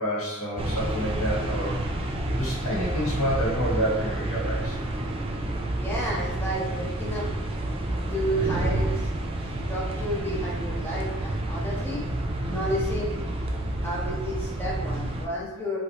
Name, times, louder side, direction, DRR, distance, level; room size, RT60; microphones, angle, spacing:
voice 1, 0.0-4.8, equal, 75° left, -4 dB, 0.9 m, -29 dB
sound 1, 0.6-15.3, right 1 dB, 25° right, 0.3 m, -29 dB
voice 2, 5.8-7.3 8.1-9.1 9.4-13.1 13.8-15.8, right 1 dB, 10° left, -4 dB, 0.7 m, -31 dB
3.0 x 2.7 x 2.8 m, 1.1 s
head